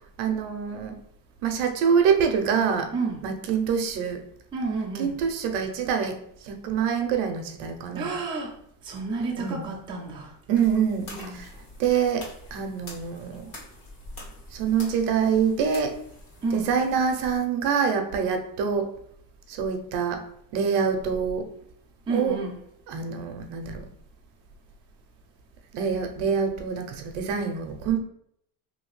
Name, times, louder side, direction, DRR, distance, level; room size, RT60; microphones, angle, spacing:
voice 1, 0.2-1.0 1.4-2.9 3.2-4.2 5.0-6.2 6.4-8.1 9.4-9.7 10.5-11.1 11.3-11.5 11.8-13.5 14.5-15.9 16.5-18.9 19.5-20.2 20.5-21.5 22.1-22.4 22.9-23.9 25.7-28.0, right 6 dB, 60° right, 4 dB, 0.7 m, -25 dB
voice 2, 4.5-5.1 7.9-8.5 8.8-10.3 11.1-11.4 16.4-16.7 22.1-22.5, right 3 dB, 10° right, -4 dB, 0.4 m, -30 dB
sound 1, 10.6-17.4, left 1 dB, 45° left, 1.3 m, -45 dB
2.8 x 2.7 x 3.1 m, 0.70 s
cardioid pair, 135°, 48 cm